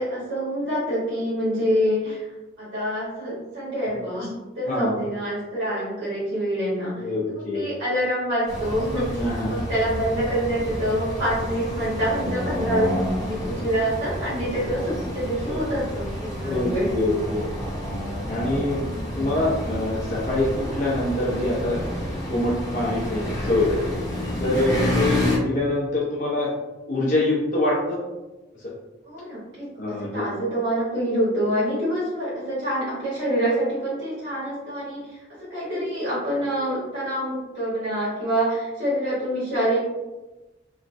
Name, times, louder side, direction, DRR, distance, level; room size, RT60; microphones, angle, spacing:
voice 1, 0.0-2.2 2.6-7.0 7.3-16.9 24.8-25.2 29.0-35.0 35.4-39.8, equal, 85° right, -9 dB, 1.2 m, -26 dB
voice 2, 7.0-7.7 9.2-9.6 15.4-15.6 16.4-17.5 18.3-18.8 19.2-21.9 22.3-24.0 24.4-26.5 26.9-28.0 29.7-30.3, left 1 dB, 45° left, -6 dB, 0.5 m, -25 dB
sound 1, 8.5-25.4, left 1 dB, 25° left, 1.0 m, -29 dB
3.2 x 2.1 x 2.6 m, 1.1 s
head